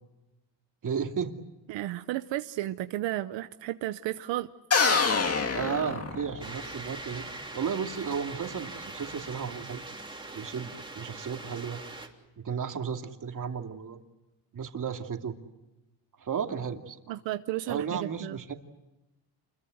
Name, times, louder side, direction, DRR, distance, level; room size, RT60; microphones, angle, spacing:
voice 1, 0.8-1.3 5.5-9.8 10.3-11.8 12.4-14.0 14.5-15.4 16.2-17.0 17.7-18.5, right 7 dB, 45° right, 4 dB, 2.6 m, -34 dB
voice 2, 1.7-4.5 17.1-18.4, right 15 dB, 85° right, 10 dB, 0.9 m, -33 dB
Shutdown small, 4.7-6.6, left 5 dB, 35° left, 2.4 m, -26 dB
sound 1, 6.4-12.1, right 2 dB, 10° right, 3.3 m, -42 dB
29.0 x 22.5 x 8.0 m, 1.0 s
cardioid pair, 120°, 43 cm